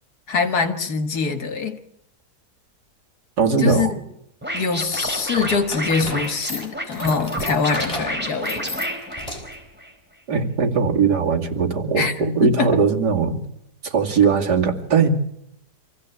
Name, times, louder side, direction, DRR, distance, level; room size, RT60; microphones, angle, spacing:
voice 1, 0.3-1.8 3.6-4.0 4.5-8.9 12.0-12.2 12.4-12.7, left 5 dB, 65° left, 7 dB, 2.2 m, -24 dB
voice 2, 3.4-3.9 10.3-13.4 13.8-15.1, right 5 dB, 80° right, 1 dB, 3.0 m, -19 dB
Scratching (performance technique), 4.4-9.9, equal, 5° right, 4.4 m, -29 dB
sound 1, 4.9-9.7, left 1 dB, 20° left, 4.6 m, -35 dB
26.0 x 16.0 x 8.3 m, 0.78 s
omnidirectional pair, 1.8 m